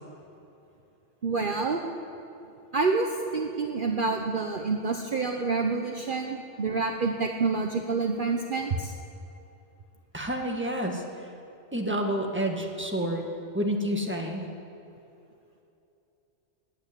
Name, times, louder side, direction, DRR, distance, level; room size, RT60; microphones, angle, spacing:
voice 1, 1.2-1.8 2.7-8.9, right 4 dB, 50° right, 3 dB, 1.0 m, -28 dB
voice 2, 10.1-11.0 11.7-13.2 13.5-14.5, equal, 10° right, 2 dB, 1.7 m, -29 dB
19.5 x 8.9 x 8.3 m, 2.8 s
omnidirectional pair, 1.2 m